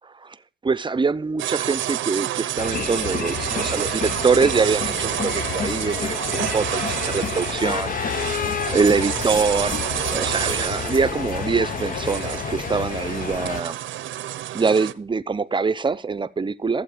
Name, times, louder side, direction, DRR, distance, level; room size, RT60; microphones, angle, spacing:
voice 1, 0.0-0.4 0.6-8.1 8.7-9.8 10.1-13.8 14.3-16.8, right 4 dB, 25° right, 0.7 m, -24 dB
sound 1, 1.4-14.9, right 13 dB, 80° right, 0.9 m, -29 dB
sound 2, 2.6-13.6, left 7 dB, 45° left, 0.7 m, -29 dB
14.5 x 7.8 x 5.0 m
cardioid pair, 90°, 20 cm